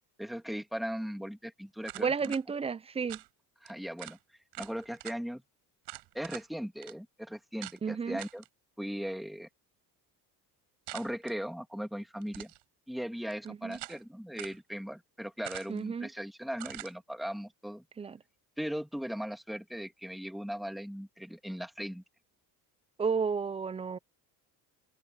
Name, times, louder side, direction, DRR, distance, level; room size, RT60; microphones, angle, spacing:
voice 1, 0.2-2.3 3.6-4.2 4.6-5.4 6.1-8.4 8.8-9.5 10.9-12.5 12.9-17.8 18.6-22.0, equal, ahead, 2.7 m, -38 dB
sound 1, 1.8-2.4 3.1-3.3 3.7-3.8 4.0-4.2 4.5-5.2 5.8-6.5 6.8-6.9 7.6-7.8 8.2-8.5 10.9-11.3 12.2-12.6 13.3-14.0 14.4-14.6 15.4-15.9 16.6-16.9, right 19 dB, 85° right, 4.7 m, -45 dB
voice 2, 2.0-3.2 7.8-8.2 13.5-13.8 15.7-16.1 18.0-18.2 23.0-24.0, right 5 dB, 15° right, 0.4 m, -32 dB
cardioid pair, 110°, 40 cm